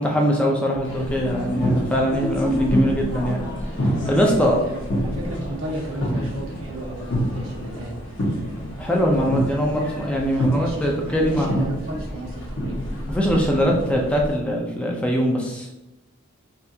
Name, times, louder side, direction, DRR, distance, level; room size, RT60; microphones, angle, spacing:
voice 1, 0.0-3.4 3.8-4.6 8.8-11.7 13.1-15.9, equal, 5° left, -1 dB, 0.5 m, -22 dB
sound 1, 0.8-14.4, equal, 55° left, 1.2 m, -27 dB
voice 2, 4.4-7.9 10.3-12.8, right 1 dB, 85° right, -3 dB, 1.2 m, -33 dB
5.5 x 2.5 x 2.8 m, 0.93 s
head